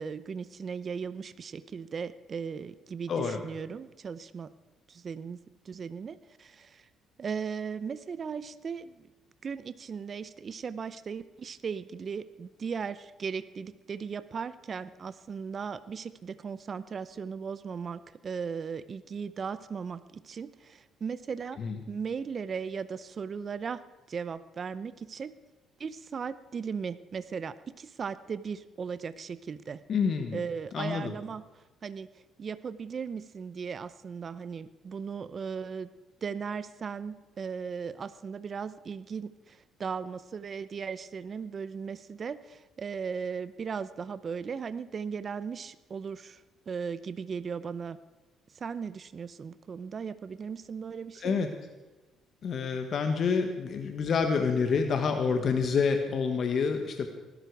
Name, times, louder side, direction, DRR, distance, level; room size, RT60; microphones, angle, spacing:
voice 1, 0.0-4.5 4.9-5.4 5.6-6.9 7.2-9.1 9.4-23.8 24.1-25.3 25.8-29.8 30.3-35.9 36.2-48.0 48.5-51.4, right 6 dB, 40° right, 15 dB, 0.7 m, -37 dB
voice 2, 3.1-3.4 21.6-21.8 29.9-30.4 30.7-31.1 51.2-51.5 52.4-57.1, left 5 dB, 55° left, 6 dB, 1.5 m, -27 dB
19.5 x 12.0 x 4.8 m, 1.2 s
cardioid pair, 90°, 0 cm